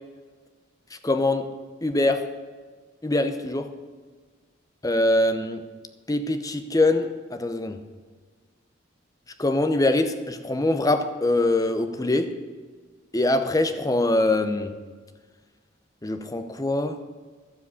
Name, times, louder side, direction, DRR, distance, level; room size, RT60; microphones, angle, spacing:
voice 1, 1.0-1.5 1.8-2.2 3.0-3.7 4.8-5.6 6.1-7.8 9.4-12.3 13.1-14.7 16.0-17.0, left 2 dB, 20° left, 8 dB, 0.7 m, -23 dB
12.0 x 7.6 x 8.2 m, 1.5 s
head